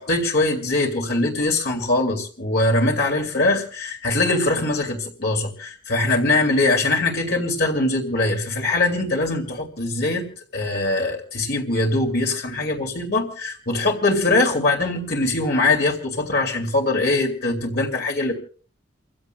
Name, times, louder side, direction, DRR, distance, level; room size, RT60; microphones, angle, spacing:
voice 1, 0.0-18.3, left 2 dB, 55° left, 1 dB, 2.5 m, -22 dB
30.0 x 15.5 x 2.2 m, 0.41 s
head